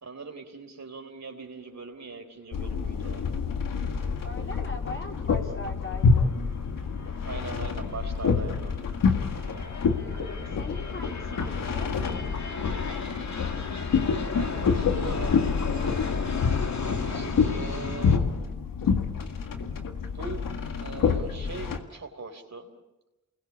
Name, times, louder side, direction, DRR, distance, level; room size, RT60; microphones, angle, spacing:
voice 1, 0.0-3.2 7.2-8.7 14.2-16.5 16.9-18.2 20.1-20.4 20.8-22.8, right 4 dB, 60° right, 4 dB, 4.1 m, -41 dB
sound 1, 2.5-21.8, left 5 dB, 90° left, 1.9 m, -27 dB
voice 2, 4.2-6.3 9.9-11.9, left 2 dB, 40° left, 1 dB, 4.3 m, -40 dB
sound 2, 5.9-18.2, left 4 dB, 55° left, 2.2 m, -37 dB
29.0 x 20.5 x 8.4 m, 1.0 s
cardioid pair, 45°, 32 cm